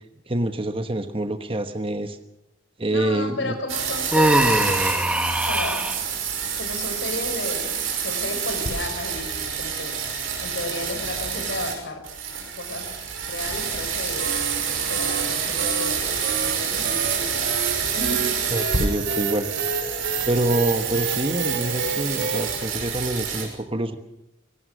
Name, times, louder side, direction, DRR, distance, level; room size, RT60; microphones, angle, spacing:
voice 1, 0.3-2.2 2.8-3.5 18.5-19.5 20.2-24.0, right 1 dB, 25° right, 8 dB, 1.1 m, -26 dB
voice 2, 2.9-4.9 5.4-5.9 6.6-9.9 10.4-12.0 12.6-12.9 13.3-14.3 14.7-17.5 17.9-18.4, left 2 dB, 60° left, 5 dB, 5.5 m, -33 dB
sound 1, 3.7-11.7 12.0-23.4, right 6 dB, 80° right, 5.8 m, -29 dB
Human voice, 4.1-6.0, right 1 dB, 5° right, 1.6 m, -21 dB
sound 2, 14.2-22.6, right 6 dB, 60° right, 3.0 m, -28 dB
24.5 x 18.0 x 6.4 m, 0.90 s
head